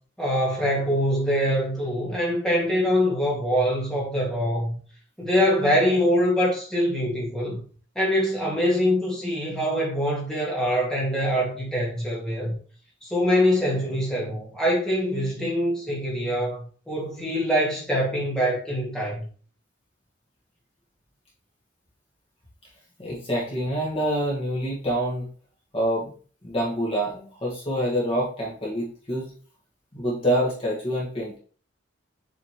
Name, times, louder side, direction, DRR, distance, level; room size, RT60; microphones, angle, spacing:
voice 1, 0.2-4.8 5.2-7.6 8.0-12.6 13.0-19.3, equal, 5° left, 2.2 m, -24 dB
voice 2, 23.0-25.3 25.7-26.1 26.4-29.3 29.9-31.4, equal, 30° left, 1.9 m, -26 dB
7.4 x 4.2 x 3.3 m
head